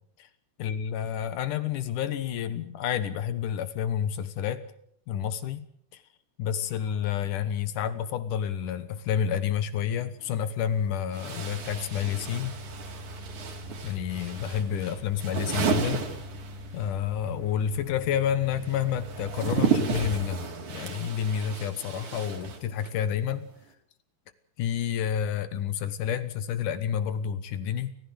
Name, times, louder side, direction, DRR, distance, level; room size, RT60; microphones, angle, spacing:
voice 1, 0.6-4.6 5.1-5.7 5.9-6.0 6.4-12.6 13.8-16.1 16.7-23.5 24.6-28.0, left 9 dB, 65° left, 13 dB, 2.2 m, -29 dB
sound 1, 10.2-10.3 11.1-16.9 17.2-23.0, right 6 dB, 50° right, 3.8 m, -33 dB
sound 2, 11.5-19.8, left 1 dB, 75° right, 6.2 m, -43 dB
30.0 x 15.0 x 7.9 m, 0.67 s
omnidirectional pair, 4.9 m